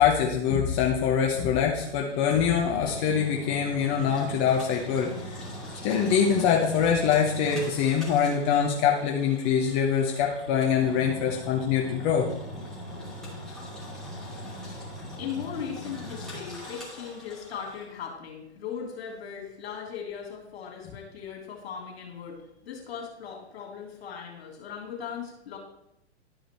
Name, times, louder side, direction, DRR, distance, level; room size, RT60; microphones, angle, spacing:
voice 1, 0.0-5.4 5.8-12.3, left 7 dB, 30° left, 0 dB, 0.9 m, -24 dB
Engine, 1.7-17.9, equal, ahead, 2.7 m, -41 dB
voice 2, 14.8-25.6, left 7 dB, 65° left, 1 dB, 3.2 m, -38 dB
11.5 x 5.0 x 4.5 m, 0.81 s
hypercardioid pair, 130°, 34 cm